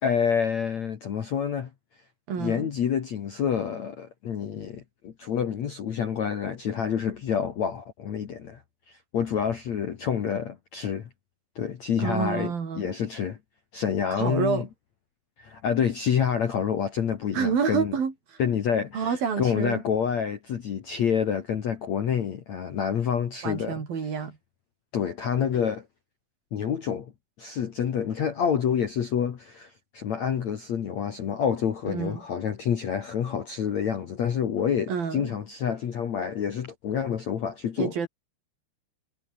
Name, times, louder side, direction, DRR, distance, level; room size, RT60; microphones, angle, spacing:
voice 1, 0.0-1.7 2.4-8.6 8.9-11.1 11.6-13.4 13.7-14.6 15.4-17.9 18.4-23.8 24.9-25.9 26.5-27.1 27.4-37.9, left 7 dB, 55° left, 2.3 m, -28 dB
voice 2, 2.3-2.7 12.0-12.9 14.2-14.7 17.3-18.1 18.9-19.8 23.4-24.4 31.9-32.2 34.9-35.3 37.8-38.1, right 6 dB, 55° right, 5.5 m, -28 dB
omnidirectional pair, 5.3 m